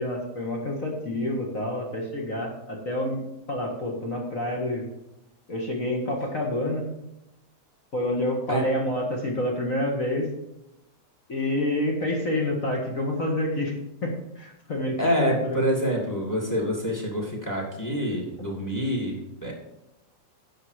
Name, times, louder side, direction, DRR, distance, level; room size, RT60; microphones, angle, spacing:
voice 1, 0.0-3.2 3.5-4.9 5.5-6.8 7.9-10.3 11.3-13.7 14.0-15.7, left 1 dB, 35° left, 0 dB, 1.5 m, -28 dB
voice 2, 15.0-19.5, equal, 5° left, 0 dB, 2.0 m, -27 dB
10.5 x 7.7 x 5.0 m, 0.88 s
omnidirectional pair, 3.4 m